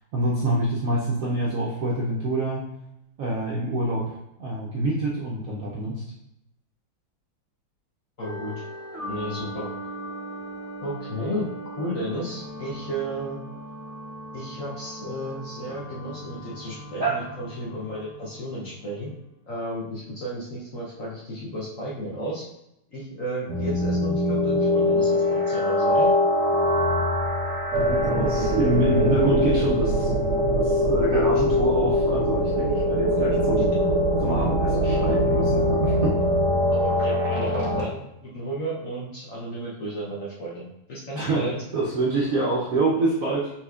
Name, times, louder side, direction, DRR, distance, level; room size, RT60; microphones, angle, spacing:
voice 1, 0.1-2.6 3.2-4.0 4.4-6.0 17.0-17.1 27.8-30.1 30.6-33.7 34.2-36.2 41.2-43.5, right 2 dB, 70° right, -5 dB, 0.8 m, -26 dB
voice 2, 8.2-8.5 9.1-9.7 10.8-11.5 11.8-13.4 14.3-19.1 19.5-22.5 22.9-26.1 36.7-41.6, right 1 dB, 55° left, -5 dB, 0.9 m, -33 dB
sound 1, 8.2-19.2, right 1 dB, 35° left, 1.3 m, -39 dB
sound 2, 23.5-37.8, equal, 90° right, 1.8 m, -22 dB
5.7 x 3.0 x 2.4 m, 0.83 s
omnidirectional pair, 2.2 m